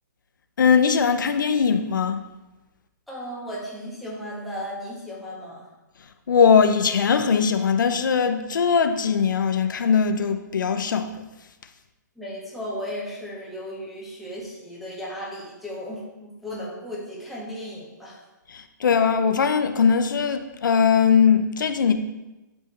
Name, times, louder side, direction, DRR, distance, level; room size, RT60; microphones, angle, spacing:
voice 1, 0.6-2.2 6.3-11.2 18.5-21.9, left 6 dB, 75° left, 8 dB, 0.7 m, -20 dB
voice 2, 3.1-5.7 12.2-18.2, equal, ahead, -6 dB, 1.7 m, -35 dB
10.0 x 5.4 x 3.3 m, 1.0 s
hypercardioid pair, 140°, 10 cm